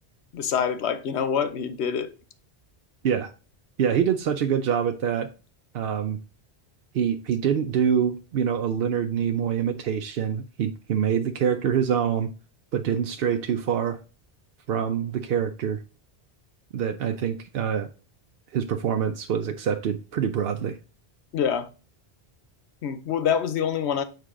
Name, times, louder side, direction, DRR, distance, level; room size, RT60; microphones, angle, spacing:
voice 1, 0.3-2.1 21.3-21.7 22.8-24.0, left 7 dB, 85° left, 1.0 m, -26 dB
voice 2, 3.8-5.3 5.7-6.2 6.9-12.3 12.7-14.0 14.7-15.8 16.7-17.9 18.5-20.8, right 8 dB, 70° right, 0.8 m, -25 dB
6.6 x 4.6 x 3.7 m
omnidirectional pair, 1.1 m